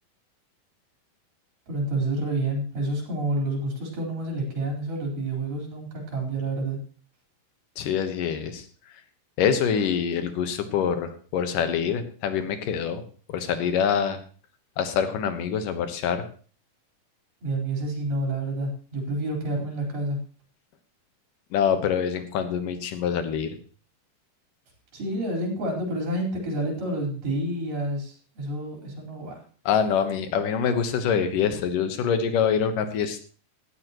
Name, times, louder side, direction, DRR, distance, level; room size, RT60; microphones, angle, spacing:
voice 1, 1.7-6.8 17.4-20.2 24.9-29.4, right 1 dB, 85° right, 0 dB, 6.1 m, -29 dB
voice 2, 7.8-8.6 9.4-13.0 13.3-14.2 14.8-16.2 21.5-23.6 29.7-33.2, left 7 dB, 85° left, 9 dB, 2.9 m, -25 dB
17.0 x 13.0 x 3.1 m, 0.41 s
omnidirectional pair, 3.7 m